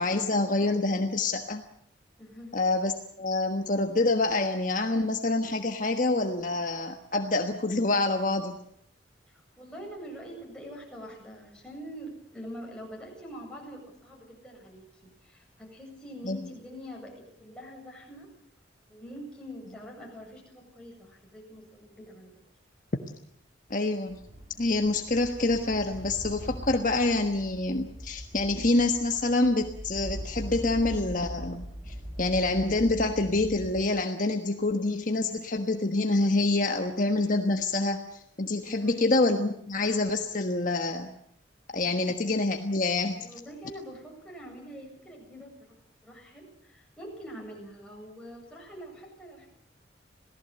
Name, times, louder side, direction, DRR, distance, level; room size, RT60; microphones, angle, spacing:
voice 1, 0.0-1.6 2.5-2.9 3.2-8.6 16.2-16.4 23.7-24.2 24.6-41.1 41.7-43.2, left 2 dB, 45° left, 5 dB, 1.4 m, -26 dB
voice 2, 2.2-2.6 9.3-18.3 18.9-22.3 38.6-39.0 43.1-45.5 46.0-49.5, equal, 5° left, -2 dB, 7.9 m, -44 dB
sound 1, 24.1-33.8, equal, 30° right, 4.0 m, -41 dB
27.0 x 18.0 x 8.0 m, 0.69 s
head